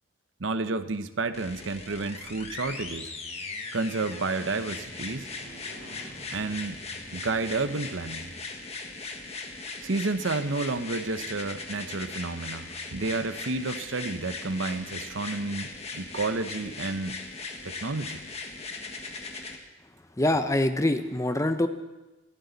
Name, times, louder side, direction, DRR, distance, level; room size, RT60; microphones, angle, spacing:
voice 1, 0.4-3.1 3.7-5.3 6.3-6.8 7.1-8.3 9.8-17.2 17.6-18.2, right 3 dB, 75° right, 11 dB, 0.8 m, -31 dB
sound 1, 1.3-19.6 20.5-20.6, left 3 dB, 30° left, 1.5 m, -39 dB
Motorcycle, 3.9-9.8, equal, 60° right, 5.0 m, -52 dB
voice 2, 20.2-21.7, left 1 dB, 15° left, 9 dB, 0.7 m, -24 dB
22.0 x 14.0 x 4.0 m, 1.1 s
head